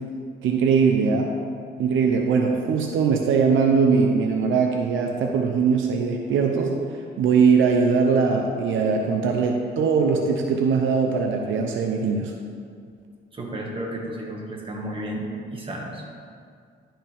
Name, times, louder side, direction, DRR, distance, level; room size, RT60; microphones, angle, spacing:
voice 1, 0.4-1.3 1.8-6.7 7.2-12.3, right 5 dB, 80° right, 2 dB, 0.8 m, -21 dB
voice 2, 13.3-16.0, right 1 dB, 25° right, -1 dB, 1.9 m, -32 dB
12.0 x 5.8 x 3.5 m, 2.2 s
cardioid pair, 90°, 20 cm